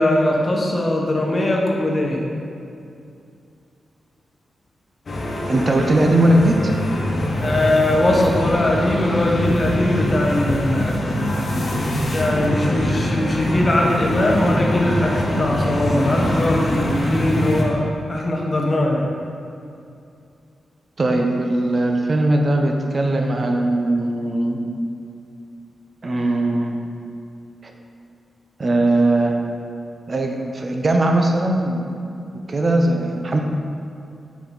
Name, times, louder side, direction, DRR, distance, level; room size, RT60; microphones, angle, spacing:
voice 1, 0.0-2.2 7.4-11.0 11.6-11.9 12.1-17.8 18.1-19.1, left 1 dB, 40° left, -1 dB, 1.1 m, -20 dB
sound 1, 5.1-17.6, left 1 dB, 55° left, 1.1 m, -23 dB
voice 2, 5.5-6.6 21.0-24.6 26.0-26.8 27.6-27.7 28.6-29.4 30.1-31.9 32.5-33.4, right 1 dB, 45° right, 2 dB, 0.7 m, -19 dB
6.6 x 4.7 x 4.0 m, 2.5 s
cardioid pair, 60°, 0 cm